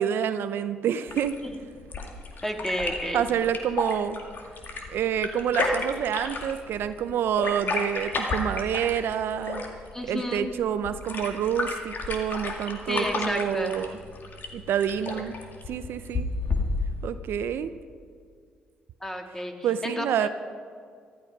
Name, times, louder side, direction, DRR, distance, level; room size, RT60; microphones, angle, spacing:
voice 1, 0.0-1.4 3.1-4.2 4.9-9.6 10.1-13.9 14.5-15.4 15.7-16.3 17.0-17.7 19.6-20.3, right 9 dB, 70° right, 11 dB, 0.6 m, -27 dB
sound 1, 1.1-17.1, left 3 dB, 55° left, 2.2 m, -33 dB
voice 2, 2.4-3.3 9.9-10.5 12.9-13.8 19.0-20.3, left 1 dB, 10° left, 4 dB, 2.0 m, -31 dB
14.5 x 13.0 x 5.4 m, 2.1 s
supercardioid pair, 55°, 4 cm